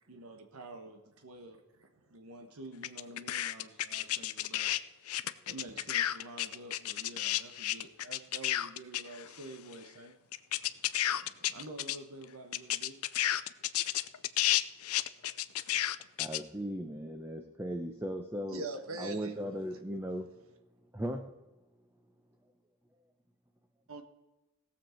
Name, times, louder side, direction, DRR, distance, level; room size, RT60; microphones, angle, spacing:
voice 1, 0.1-1.6 2.1-4.7 5.0-10.1 11.5-13.0, right 2 dB, 85° right, 1.3 m, -49 dB
sound 1, 2.8-4.8 5.1-9.4 9.7-9.8 10.3-12.0 12.2-12.3 12.5-16.4, left 13 dB, 75° left, 0.5 m, -31 dB
voice 2, 10.6-11.6 18.5-19.3 23.9-24.0, right 3 dB, 65° right, 1.3 m, -42 dB
voice 3, 16.2-18.7 19.0-20.3 20.9-21.2, equal, 10° right, 0.8 m, -37 dB
17.5 x 7.4 x 4.5 m
head